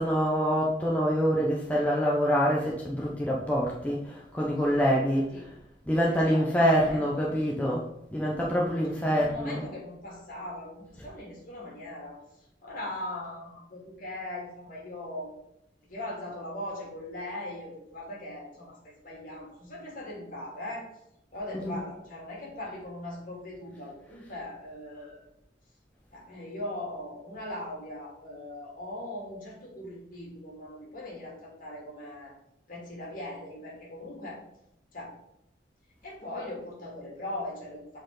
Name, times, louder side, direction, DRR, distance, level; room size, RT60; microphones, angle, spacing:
voice 1, 0.0-5.3 5.9-7.9 8.1-9.6 21.6-21.8, equal, 10° left, -4 dB, 0.8 m, -26 dB
voice 2, 4.6-5.4 6.1-7.5 8.9-12.2 12.6-15.3 15.8-20.9 21.3-25.2 26.1-32.3 32.7-34.4 34.9-35.2 36.0-38.0, left 1 dB, 50° left, -3 dB, 2.7 m, -40 dB
8.1 x 4.4 x 3.9 m, 0.80 s
head